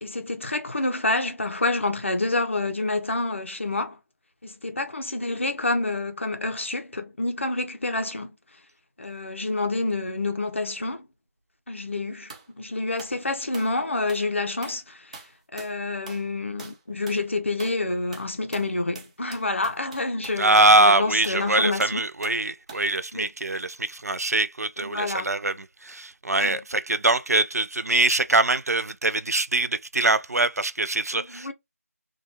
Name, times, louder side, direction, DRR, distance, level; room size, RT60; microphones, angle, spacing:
voice 1, 0.0-4.0 4.4-8.4 9.0-11.1 11.7-15.2 15.5-22.0 23.1-23.3 24.8-25.3 26.4-26.6 31.1-31.5, left 2 dB, 50° left, 0.6 m, -28 dB
sound 1, 12.3-12.5 13.0-13.2 13.5-13.8 14.1-14.3 14.6-14.8 15.1-15.8 16.1-16.3 16.6-16.8 17.1-17.2 17.6-17.8 18.1-20.8 21.2-21.4 21.8-22.4 22.7-22.9, right 4 dB, 25° right, 0.7 m, -44 dB
voice 2, 20.4-25.5 25.8-31.5, right 2 dB, 75° right, 0.4 m, -23 dB
3.0 x 2.3 x 2.8 m
figure-of-eight pair, 170°, 8 cm